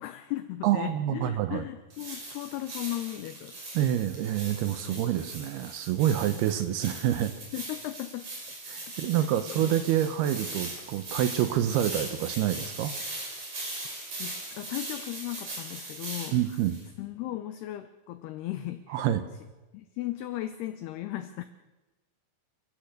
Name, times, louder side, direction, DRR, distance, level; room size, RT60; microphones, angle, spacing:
voice 1, 0.0-3.6 4.8-5.0 7.5-8.3 8.9-9.1 9.5-9.7 14.2-16.4 17.0-19.1 19.7-21.4, left 15 dB, 85° left, 11 dB, 2.3 m, -36 dB
voice 2, 0.6-1.7 3.7-7.3 8.7-12.9 16.3-16.8 18.9-19.2, right 11 dB, 85° right, 10 dB, 2.3 m, -27 dB
sound 1, 1.9-16.8, right 2 dB, 40° right, 6.9 m, -40 dB
29.5 x 14.5 x 6.6 m, 1.1 s
omnidirectional pair, 5.6 m